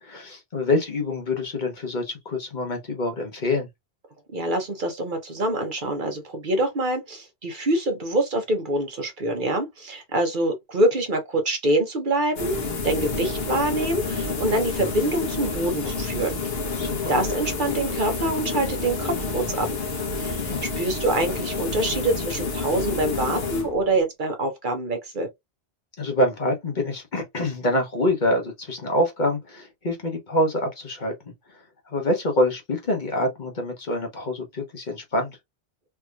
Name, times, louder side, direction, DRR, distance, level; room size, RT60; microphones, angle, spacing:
voice 1, 0.0-3.7 16.8-17.2 20.5-20.7 26.0-31.1 31.5-35.4, left 1 dB, 45° left, 1.0 m, -26 dB
voice 2, 4.3-16.3 17.1-19.7 20.2-25.3, right 1 dB, 50° right, 1.0 m, -25 dB
sound 1, 12.4-24.0, left 4 dB, 65° left, 1.2 m, -29 dB
3.4 x 2.8 x 2.3 m
omnidirectional pair, 1.1 m